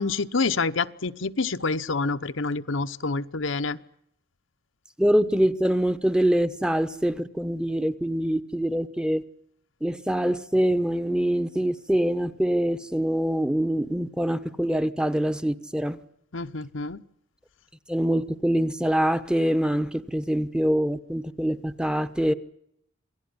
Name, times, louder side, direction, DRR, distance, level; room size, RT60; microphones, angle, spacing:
voice 1, 0.0-3.8 16.3-17.0, left 3 dB, 80° left, 1.0 m, -27 dB
voice 2, 5.0-9.2 9.8-16.0 17.9-22.3, equal, 5° right, 1.0 m, -24 dB
27.5 x 18.5 x 9.7 m
head